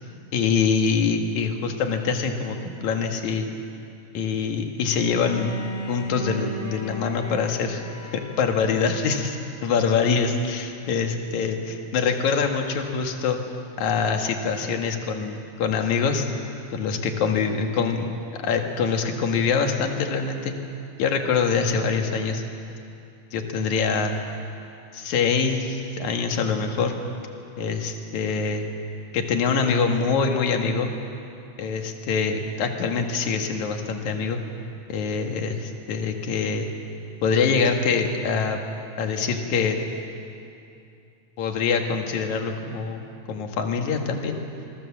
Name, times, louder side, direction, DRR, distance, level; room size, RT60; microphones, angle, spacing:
voice 1, 0.3-3.5 4.1-5.5 5.9-7.8 8.1-13.4 13.8-16.3 16.7-20.5 21.0-22.4 23.3-24.2 24.9-26.9 27.6-28.6 29.1-30.9 31.6-34.4 34.9-36.7 37.2-38.6 39.0-39.8 41.4-44.4, left 5 dB, 65° left, 4 dB, 3.0 m, -24 dB
Bowed string instrument, 4.9-9.9, equal, 65° right, 8.1 m, -36 dB
27.5 x 22.5 x 7.4 m, 2.6 s
omnidirectional pair, 3.8 m